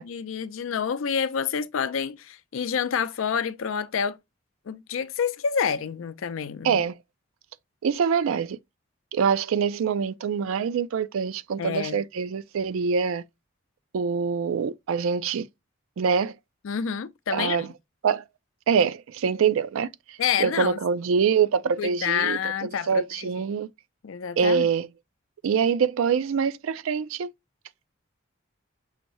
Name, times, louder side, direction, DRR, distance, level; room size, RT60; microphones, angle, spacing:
voice 1, 0.0-4.2 4.7-6.8 11.6-12.0 16.6-17.7 20.2-20.8 21.8-23.4 24.0-24.7, left 7 dB, 75° left, 0.4 m, -28 dB
voice 2, 6.6-7.0 7.8-8.6 9.1-13.2 13.9-15.5 16.0-16.3 17.3-17.7 18.0-18.2 18.7-23.7 24.4-24.9 25.4-27.3, right 6 dB, 80° right, 0.4 m, -25 dB
5.7 x 2.6 x 2.9 m
head